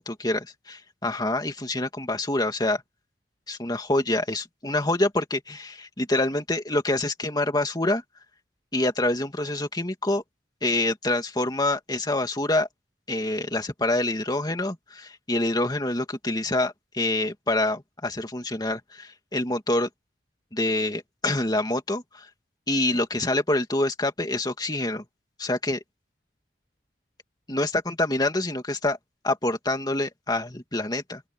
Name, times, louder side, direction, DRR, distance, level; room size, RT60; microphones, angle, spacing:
voice 1, 0.2-2.8 3.5-8.0 8.7-10.2 10.6-12.7 13.1-19.9 20.5-22.3 22.7-25.0 25.4-25.8 27.5-29.0 29.2-31.2, left 2 dB, 25° left, 2.6 m, -26 dB
open air
head